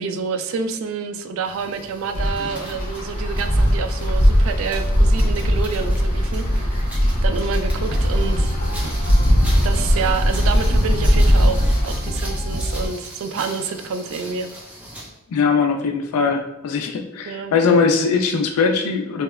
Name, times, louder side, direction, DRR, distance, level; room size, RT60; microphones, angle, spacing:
voice 1, 0.0-6.9 7.2-8.5 9.6-14.5 17.3-17.5, right 5 dB, 65° right, 7 dB, 0.3 m, -28 dB
sound 1, 1.4-15.2, right 1 dB, 5° right, 0.5 m, -39 dB
Wind, 2.1-11.9, equal, 40° left, 0.6 m, -19 dB
sound 2, 7.7-12.9, equal, 70° left, 0.7 m, -28 dB
voice 2, 15.3-19.2, left 5 dB, 85° left, 4 dB, 0.3 m, -20 dB
2.8 x 2.0 x 2.2 m, 0.93 s
head